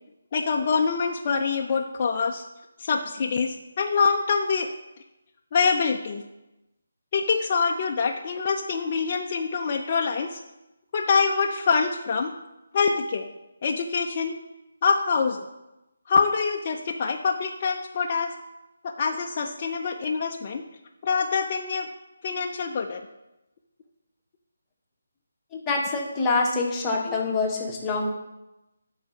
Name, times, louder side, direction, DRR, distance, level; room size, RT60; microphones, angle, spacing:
voice 1, 0.3-2.4 2.8-4.7 5.5-6.2 7.1-10.4 10.9-12.3 12.7-13.3 13.6-14.4 14.8-15.4 16.1-18.3 18.8-20.6 21.0-21.9 22.2-23.1, left 5 dB, 30° left, 1 dB, 0.4 m, -25 dB
voice 2, 25.5-28.1, left 3 dB, 15° left, -1 dB, 0.9 m, -25 dB
9.9 x 4.0 x 5.5 m, 0.97 s
hypercardioid pair, 165°, 0 cm